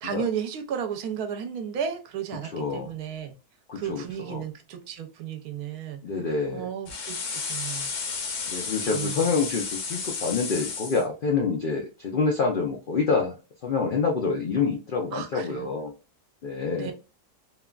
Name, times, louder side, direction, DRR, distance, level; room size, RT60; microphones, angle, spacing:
voice 1, 0.0-3.4 3.8-6.0 6.5-7.9 8.9-9.3 15.1-15.7 16.7-16.9, right 8 dB, 80° right, 6 dB, 1.1 m, -33 dB
voice 2, 2.5-2.9 3.7-4.4 6.0-6.7 8.5-13.3 13.6-15.9 16.4-16.9, left 4 dB, 80° left, 0 dB, 0.4 m, -27 dB
sound 1, 6.9-11.0, left 5 dB, 65° left, 0.9 m, -32 dB
3.1 x 2.4 x 2.2 m, 0.31 s
omnidirectional pair, 1.6 m